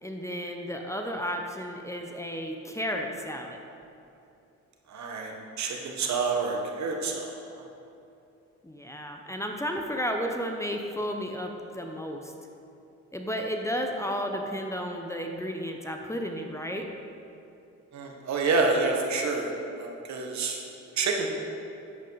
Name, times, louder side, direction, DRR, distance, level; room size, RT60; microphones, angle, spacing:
voice 1, 0.0-3.6 8.6-12.3 13.1-16.9, equal, 10° left, 3 dB, 0.8 m, -33 dB
voice 2, 4.9-7.4 17.9-20.6 21.0-21.3, right 3 dB, 65° right, 1 dB, 1.5 m, -28 dB
9.8 x 8.2 x 4.1 m, 2.8 s
cardioid pair, 90°, 30 cm